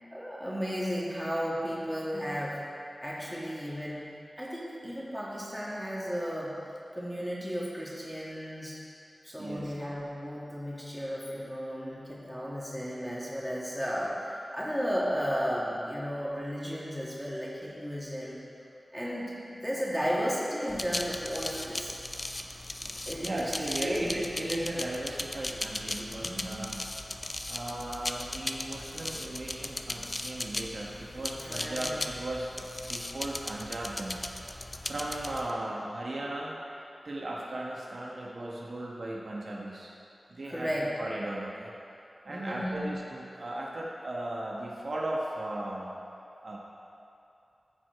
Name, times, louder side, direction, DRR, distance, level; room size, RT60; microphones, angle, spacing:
voice 1, 0.1-2.6 3.0-4.0 4.4-6.5 6.9-8.8 9.2-18.4 18.9-21.9 22.8-24.1 26.2-26.8 31.3-32.0 40.5-40.9 42.3-42.9, equal, ahead, -7 dB, 2.2 m, -34 dB
voice 2, 9.4-9.7 23.2-26.8 27.5-34.2 34.8-36.5 37.0-39.9 40.3-41.7 42.2-45.9 46.4-46.6, right 1 dB, 65° right, -3 dB, 1.2 m, -36 dB
sound 1, 20.7-35.5, left 1 dB, 30° left, 0.5 m, -37 dB
14.5 x 4.8 x 4.6 m, 2.7 s
wide cardioid pair, 75°, 0 cm